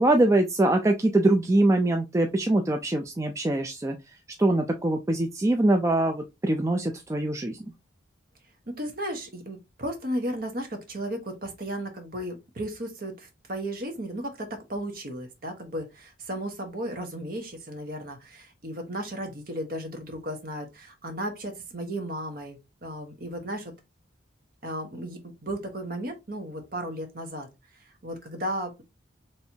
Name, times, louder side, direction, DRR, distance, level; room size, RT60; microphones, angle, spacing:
voice 1, 0.0-4.0 4.4-7.6, right 2 dB, 15° right, 0.3 m, -23 dB
voice 2, 8.7-23.7 24.6-27.5 28.0-28.8, right 1 dB, 50° right, 1.0 m, -34 dB
4.4 x 3.2 x 2.7 m
head